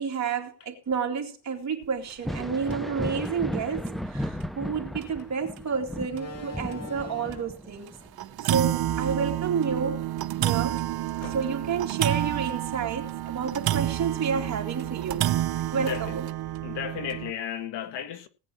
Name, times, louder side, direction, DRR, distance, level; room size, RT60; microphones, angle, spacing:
voice 1, 0.0-7.9 8.4-10.0 10.4-10.8 11.2-15.3 15.7-16.3, right 6 dB, 35° right, 2.8 m, -30 dB
Thunder, 2.1-11.4 11.8-13.0 14.6-14.7 15.5-15.6, equal, ahead, 0.5 m, -36 dB
sound 1, 2.1-2.3 2.7-2.8 3.3-3.4 4.4-4.5 5.0-5.1 5.6-5.7 6.2-6.3 7.3-7.5 7.9-8.0 8.2-17.3, right 13 dB, 55° right, 1.0 m, -29 dB
Slam, 5.0-5.2 6.1-7.7 8.7-10.1 10.5-10.6 11.2-11.8, left 1 dB, 35° left, 2.5 m, -42 dB
voice 2, 15.7-16.2 16.6-18.3, left 9 dB, 65° left, 1.8 m, -34 dB
19.5 x 9.3 x 3.0 m
cardioid pair, 135°, 45 cm